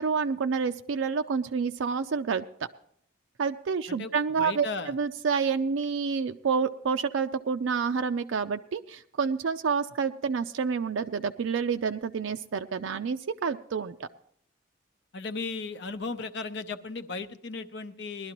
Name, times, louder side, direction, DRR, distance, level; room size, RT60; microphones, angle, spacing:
voice 1, 0.0-2.4 3.4-14.1, right 5 dB, 75° right, 7 dB, 0.4 m, -28 dB
voice 2, 3.9-5.0 15.1-18.3, left 4 dB, 55° left, 11 dB, 0.7 m, -36 dB
19.5 x 12.0 x 3.0 m, 0.66 s
head